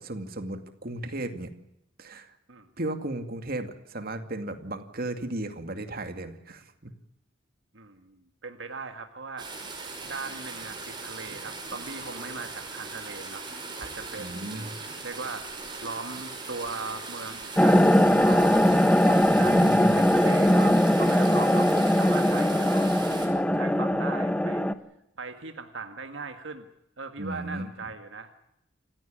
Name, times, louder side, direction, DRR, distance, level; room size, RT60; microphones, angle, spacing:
voice 1, 0.0-1.5 2.0-2.3 2.8-6.9 14.2-14.7 19.4-20.0 27.2-27.7, right 1 dB, 50° right, 8 dB, 2.3 m, -35 dB
voice 2, 7.7-9.5 10.1-14.7 15.0-15.5 15.8-18.7 19.1-21.7 22.0-22.9 23.3-24.7 25.2-26.7 27.0-28.4, right 4 dB, 70° right, 7 dB, 1.8 m, -39 dB
sound 1, 9.4-23.3, right 3 dB, 25° right, 5.7 m, -39 dB
sound 2, 17.6-24.7, equal, 5° left, 1.0 m, -21 dB
28.0 x 15.5 x 8.7 m, 0.83 s
head